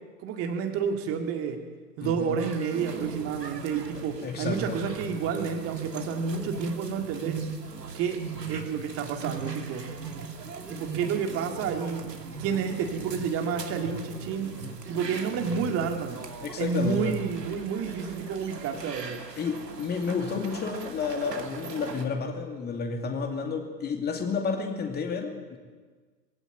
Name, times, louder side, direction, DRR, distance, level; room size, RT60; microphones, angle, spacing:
voice 1, 0.2-1.6 2.0-7.5 7.9-8.2 8.5-9.9 10.7-12.1 12.4-14.6 14.9-16.3 16.6-19.2, right 6 dB, 25° right, 5 dB, 2.3 m, -30 dB
voice 2, 2.0-2.4 4.2-4.8 16.4-17.2 19.4-25.6, left 5 dB, 20° left, 4 dB, 2.7 m, -31 dB
sound 1, 2.4-22.0, right 4 dB, 75° right, 2.9 m, -39 dB
22.5 x 17.0 x 9.2 m, 1.4 s
figure-of-eight pair, 100°, 49 cm